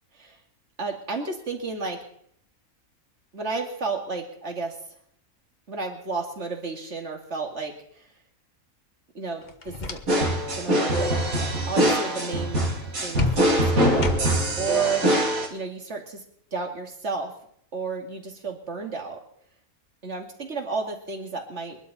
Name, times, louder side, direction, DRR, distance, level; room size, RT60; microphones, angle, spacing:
voice 1, 0.8-2.0 3.3-4.8 5.7-8.1 9.1-10.0 10.5-11.1 11.7-12.6 13.0-14.1 14.6-15.0 15.5-16.2 16.5-17.3 17.7-19.2 20.0-21.8, right 4 dB, 50° right, 2 dB, 2.6 m, -32 dB
sound 1, 9.4-10.4 10.7-11.1 13.2-14.6, left 5 dB, 35° left, 1.2 m, -32 dB
sound 2, 10.1-15.5, right 1 dB, 75° right, 3.3 m, -23 dB
23.0 x 12.0 x 4.2 m, 0.66 s
omnidirectional pair, 1.5 m